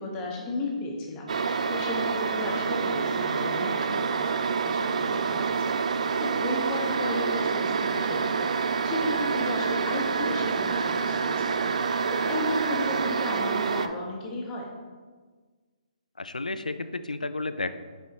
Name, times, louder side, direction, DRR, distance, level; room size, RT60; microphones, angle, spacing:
voice 1, 0.0-5.5 6.2-8.5 8.8-11.6 12.1-14.7, left 2 dB, 20° left, -2 dB, 1.2 m, -34 dB
sound 1, 1.3-13.9, right 5 dB, 65° right, 0.4 m, -27 dB
voice 2, 16.2-17.8, left 2 dB, 90° left, 11 dB, 0.4 m, -32 dB
6.1 x 5.5 x 2.9 m, 1.4 s
figure-of-eight pair, 140°, 4 cm